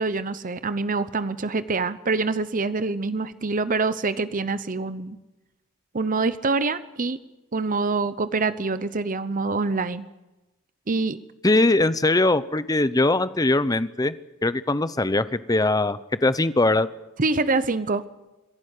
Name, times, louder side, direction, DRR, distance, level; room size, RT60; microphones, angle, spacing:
voice 1, 0.0-5.2 5.9-7.2 7.5-10.1 10.9-11.2 17.2-18.0, right 3 dB, 40° right, 13 dB, 0.8 m, -25 dB
voice 2, 11.4-14.1 14.4-16.9, left 2 dB, 15° left, 14 dB, 0.7 m, -21 dB
26.5 x 11.5 x 9.8 m, 1.0 s
head